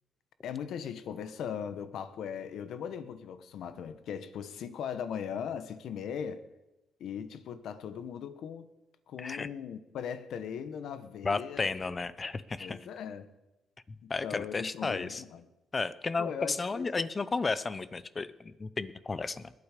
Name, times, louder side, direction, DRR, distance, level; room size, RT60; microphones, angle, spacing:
voice 1, 0.4-6.4 7.0-8.7 9.1-11.7 12.6-13.3 14.0-15.5 16.2-17.1, left 8 dB, 75° left, 12 dB, 1.0 m, -39 dB
voice 2, 9.2-9.5 11.2-12.8 14.1-15.2 15.7-19.5, left 4 dB, 30° left, 16 dB, 0.6 m, -33 dB
20.5 x 8.6 x 5.0 m, 1.0 s
cardioid pair, 90°, 0 cm